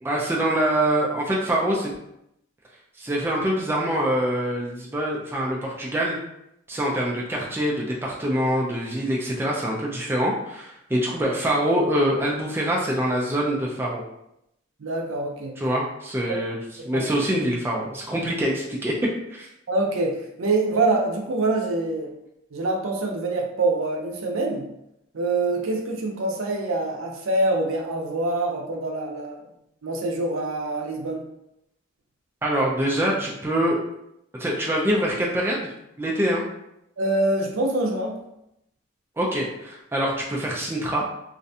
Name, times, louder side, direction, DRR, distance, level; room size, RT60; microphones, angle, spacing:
voice 1, 0.0-1.9 3.0-6.2 6.7-14.0 15.6-16.6 16.8-18.9 19.3-19.5 32.4-33.8 34.4-35.7 36.0-36.4 39.2-41.0, right 1 dB, 10° right, -3 dB, 0.3 m, -24 dB
voice 2, 14.8-15.5 16.3-16.4 16.8-17.1 19.7-22.2 22.5-24.7 25.1-29.4 29.8-31.2 37.0-38.2, right 2 dB, 85° right, 1 dB, 0.5 m, -25 dB
2.5 x 2.1 x 2.7 m, 0.80 s
head